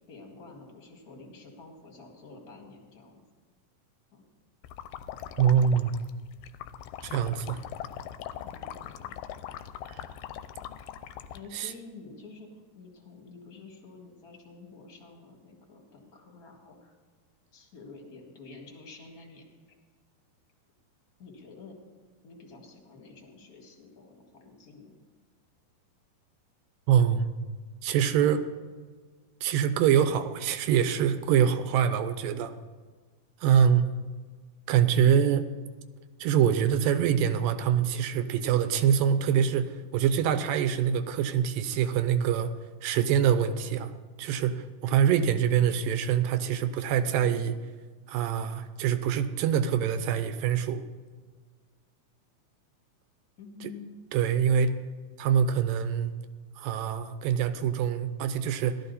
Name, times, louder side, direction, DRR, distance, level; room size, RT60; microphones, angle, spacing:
voice 1, 0.1-3.2 4.1-4.3 8.4-9.2 11.3-17.0 17.5-19.8 21.2-21.8 22.2-25.0 53.4-54.0, left 3 dB, 30° left, 1 dB, 1.9 m, -49 dB
sound 1, 4.6-11.4, left 10 dB, 90° left, 2.4 m, -41 dB
voice 2, 5.4-5.9 7.0-7.6 9.8-10.0 11.5-11.7 26.9-27.3 27.8-28.5 29.4-32.5 33.4-33.9 34.7-35.5 36.2-42.5 42.8-43.9 44.2-47.6 48.1-50.8 53.6-53.7 54.1-54.7 55.2-56.1 56.6-58.9, right 8 dB, 80° right, 11 dB, 2.3 m, -25 dB
17.0 x 12.5 x 4.1 m, 1.5 s
omnidirectional pair, 4.1 m